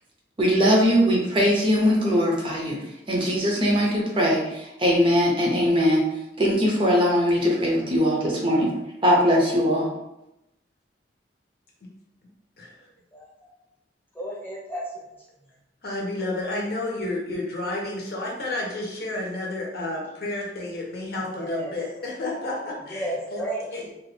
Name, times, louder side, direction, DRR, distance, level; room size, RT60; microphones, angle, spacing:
voice 1, 0.4-2.8 3.1-6.1 6.4-8.7 9.0-9.9, equal, 30° right, -3 dB, 0.5 m, -21 dB
voice 2, 13.1-13.5 14.1-14.8 21.4-21.7 22.9-23.9, right 1 dB, 10° left, -6 dB, 0.9 m, -33 dB
voice 3, 15.8-23.4 23.7-23.8, left 2 dB, 60° left, -2 dB, 0.7 m, -31 dB
2.7 x 2.4 x 3.2 m, 0.89 s
head